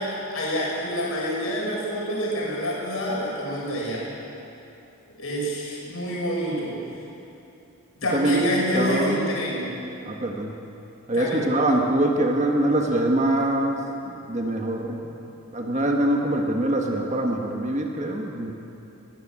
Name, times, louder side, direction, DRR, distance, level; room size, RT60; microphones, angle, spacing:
voice 1, 0.0-4.1 5.1-6.8 8.0-9.7 11.1-11.4, equal, 70° left, -4 dB, 6.4 m, -27 dB
voice 2, 8.1-8.5 8.7-9.2 10.0-10.5 11.1-15.0 15.5-18.5, right 1 dB, 30° right, 1 dB, 1.6 m, -24 dB
21.5 x 17.0 x 7.6 m, 2.9 s
head